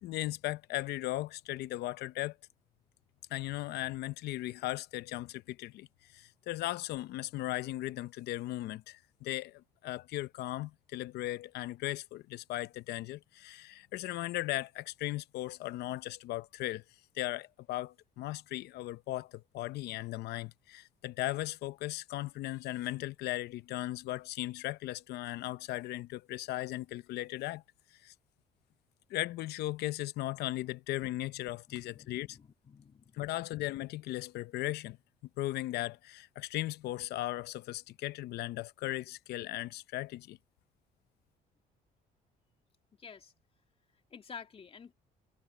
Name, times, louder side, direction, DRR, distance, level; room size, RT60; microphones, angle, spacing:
voice 1, 0.0-2.4 3.3-5.9 6.1-16.8 17.1-27.6 27.9-28.1 29.1-32.4 33.1-35.0 35.4-40.4, left 16 dB, 75° left, 0.7 m, -37 dB
voice 2, 31.7-33.2 43.0-43.3 44.1-44.9, left 6 dB, 35° left, 2.4 m, -50 dB
cardioid pair, 110°, 17 cm